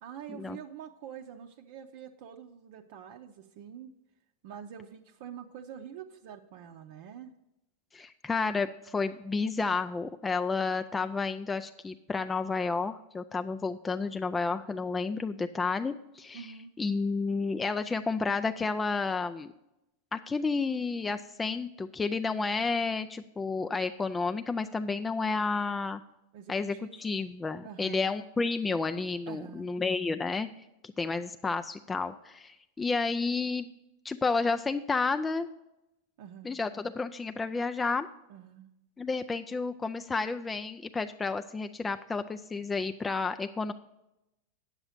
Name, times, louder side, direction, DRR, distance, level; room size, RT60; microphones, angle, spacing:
voice 1, 0.0-3.9 4.4-7.3 16.3-16.7 26.3-26.9 27.6-28.2 29.3-29.7 36.2-36.6 38.3-38.7, right 8 dB, 60° right, 3 dB, 0.7 m, -46 dB
voice 2, 7.9-16.5 16.8-19.5 20.1-26.0 26.5-30.5 30.8-33.7 34.0-35.5 36.4-38.1 39.0-43.7, left 4 dB, 10° left, 8 dB, 0.3 m, -31 dB
9.0 x 7.3 x 5.0 m, 0.91 s
supercardioid pair, 145°, 0 cm